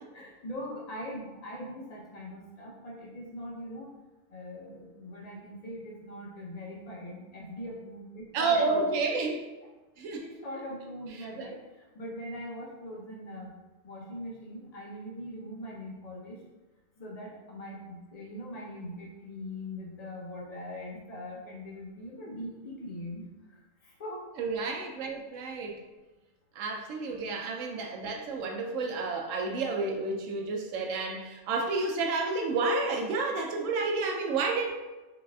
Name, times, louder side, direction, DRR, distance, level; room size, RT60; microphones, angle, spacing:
voice 1, 0.1-3.9 4.3-8.8 10.2-13.5 13.8-16.4 17.0-23.2 23.8-24.3 27.0-27.1, left 1 dB, 35° left, -2 dB, 0.7 m, -41 dB
voice 2, 8.3-9.4 10.0-10.2 11.4-11.5 24.4-25.8 26.6-34.7, right 3 dB, 75° right, 3 dB, 0.9 m, -30 dB
4.0 x 3.5 x 2.3 m, 1.2 s
omnidirectional pair, 1.4 m